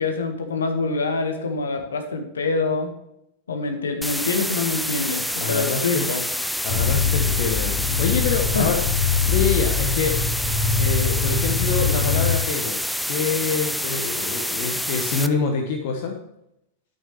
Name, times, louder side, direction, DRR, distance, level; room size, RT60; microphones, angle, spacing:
voice 1, 0.0-2.9 3.5-6.2 8.5-8.7, left 3 dB, 70° left, 5 dB, 1.7 m, -25 dB
sound 1, 4.0-15.3, equal, ahead, 0.5 m, -27 dB
voice 2, 5.4-6.1 6.6-8.8 9.3-10.2 10.8-12.8 13.1-16.2, left 5 dB, 50° left, 3 dB, 1.2 m, -26 dB
sound 2, 6.7-12.4, left 6 dB, 30° left, 4.1 m, -23 dB
11.0 x 8.6 x 3.3 m, 0.82 s
figure-of-eight pair, 90°, 0 cm